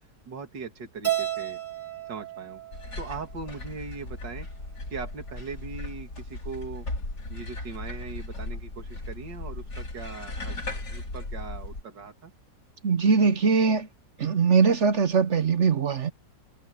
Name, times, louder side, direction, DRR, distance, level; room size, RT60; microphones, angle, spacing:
voice 1, 0.3-1.6 2.1-2.6 3.0-4.5 4.9-6.9 7.3-12.3, right 4 dB, 75° right, 3.0 m, -40 dB
Keyboard (musical), 1.0-3.4, right 12 dB, 25° right, 2.2 m, -32 dB
sound 1, 2.7-11.8, left 2 dB, 60° left, 5.5 m, -37 dB
voice 2, 12.8-13.9 14.2-16.1, right 5 dB, 50° right, 0.9 m, -21 dB
omnidirectional pair, 1.9 m